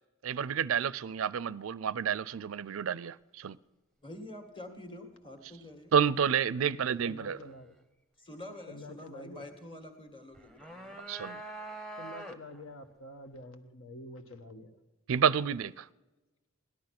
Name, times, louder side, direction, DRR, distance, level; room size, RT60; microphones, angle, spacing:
voice 1, 0.2-3.6 5.9-7.4 11.1-11.4 15.1-15.9, right 7 dB, 70° right, 0.4 m, -29 dB
voice 2, 4.0-5.9 8.2-11.0, left 1 dB, 25° left, 2.0 m, -47 dB
voice 3, 7.0-7.8 8.7-9.4 12.0-14.8, left 1 dB, 70° left, 1.4 m, -47 dB
sound 1, 10.3-12.7, right 1 dB, 5° left, 1.0 m, -44 dB
17.5 x 12.0 x 6.0 m
head